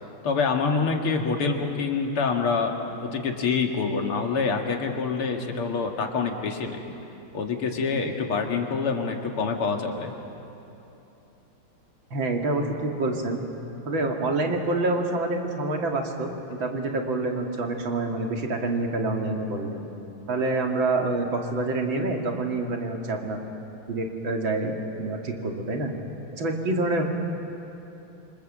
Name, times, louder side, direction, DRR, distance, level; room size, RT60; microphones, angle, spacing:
voice 1, 0.2-2.7 3.0-6.8 7.3-10.1, left 4 dB, 80° left, 2 dB, 3.0 m, -26 dB
voice 2, 12.1-13.4 13.9-19.7 20.3-23.4 23.9-25.9 26.4-27.0, right 2 dB, 65° right, 1 dB, 3.1 m, -27 dB
27.5 x 26.0 x 7.5 m, 2.9 s
omnidirectional pair, 2.4 m